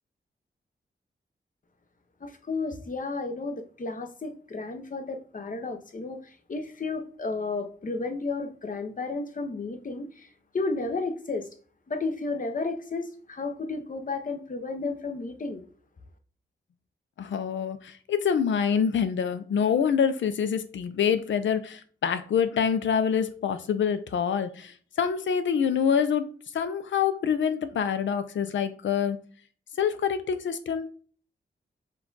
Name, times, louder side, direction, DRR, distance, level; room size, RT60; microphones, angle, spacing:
voice 1, 2.2-11.5 11.9-15.6, left 3 dB, 45° left, 6 dB, 0.8 m, -33 dB
voice 2, 17.2-26.3 26.5-29.2 29.8-30.9, left 7 dB, 85° left, 11 dB, 0.5 m, -26 dB
4.6 x 2.4 x 3.9 m, 0.44 s
cardioid pair, 55°, 19 cm